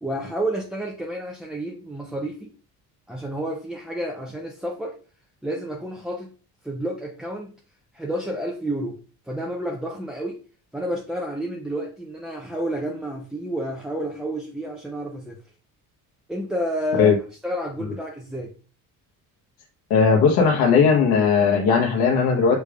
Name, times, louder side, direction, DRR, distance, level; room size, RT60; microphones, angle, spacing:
voice 1, 0.0-2.5 3.1-5.0 5.4-6.3 6.6-7.5 7.9-9.0 9.3-10.4 10.7-15.4 16.3-17.1 17.4-18.5, right 1 dB, ahead, 0.4 m, -30 dB
voice 2, 19.9-22.6, left 5 dB, 70° left, 1.0 m, -17 dB
6.5 x 3.3 x 2.3 m
cardioid pair, 150°, 37 cm